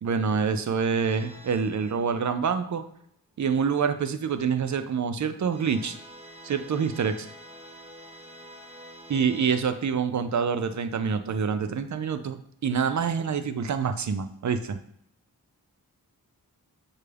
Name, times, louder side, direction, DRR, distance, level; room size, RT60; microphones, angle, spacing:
voice 1, 0.0-2.8 3.4-5.9 6.4-7.3 9.1-14.8, right 6 dB, 50° right, 9 dB, 0.5 m, -26 dB
sound 1, 1.0-2.9 5.5-9.7, equal, 15° right, 1.1 m, -48 dB
6.5 x 2.3 x 3.3 m, 0.71 s
cardioid pair, 45°, 36 cm